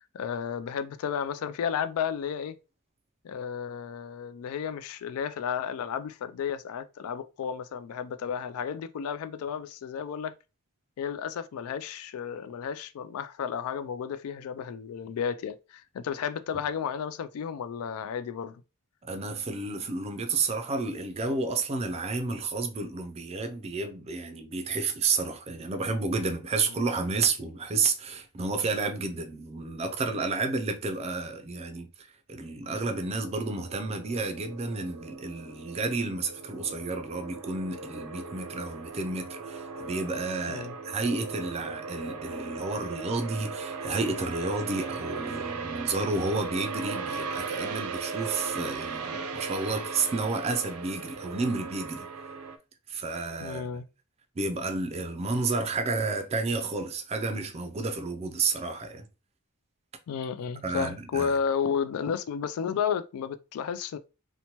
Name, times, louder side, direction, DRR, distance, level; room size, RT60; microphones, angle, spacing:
voice 1, 0.0-2.5 3.2-10.3 11.0-18.6 40.5-40.7 53.4-53.9 60.1-64.0, left 7 dB, 80° left, 0.3 m, -32 dB
voice 2, 19.0-31.9 32.3-52.1 52.9-53.7 54.4-59.1 60.6-61.4, right 3 dB, 30° right, 0.4 m, -31 dB
sound 1, 32.8-52.6, right 4 dB, 85° right, 0.5 m, -38 dB
2.8 x 2.1 x 2.9 m
head